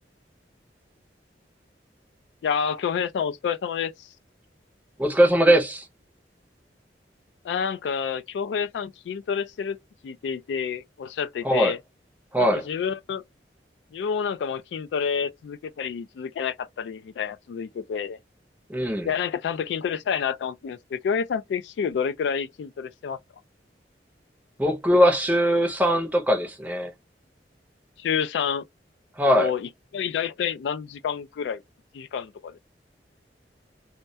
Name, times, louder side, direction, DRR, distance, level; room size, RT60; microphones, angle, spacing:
voice 1, 2.4-4.1 7.4-9.8 10.0-11.8 12.4-13.2 13.9-18.2 19.0-23.2 28.0-28.6 29.3-31.6 31.9-32.6, left 7 dB, 80° left, 0.3 m, -29 dB
voice 2, 5.0-5.8 11.4-11.7 12.3-12.6 18.7-19.1 24.6-26.9 29.2-29.5, equal, 10° right, 0.6 m, -20 dB
2.2 x 2.1 x 2.6 m
head